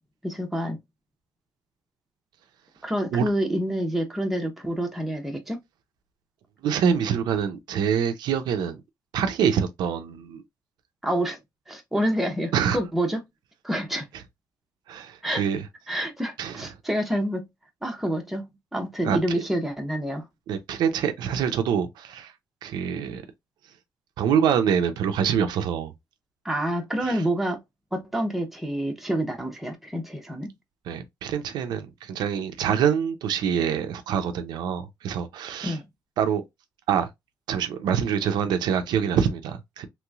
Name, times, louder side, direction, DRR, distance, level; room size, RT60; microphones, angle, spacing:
voice 1, 0.2-0.8 2.8-5.6 11.0-11.4 11.7-13.2 13.6-14.1 15.2-15.4 15.9-17.5 17.8-20.2 26.4-27.6 27.9-30.5 35.6-35.9, right 1 dB, 5° right, 0.8 m, -27 dB
voice 2, 6.6-8.8 9.1-10.4 12.5-12.8 14.9-15.7 16.4-16.7 19.0-19.4 20.5-22.3 22.6-23.2 24.2-25.9 27.0-27.2 30.9-35.8 36.2-36.4 36.9-37.1 37.5-39.9, right 8 dB, 90° right, 0.5 m, -25 dB
3.1 x 3.0 x 2.3 m
cardioid pair, 125°, 7 cm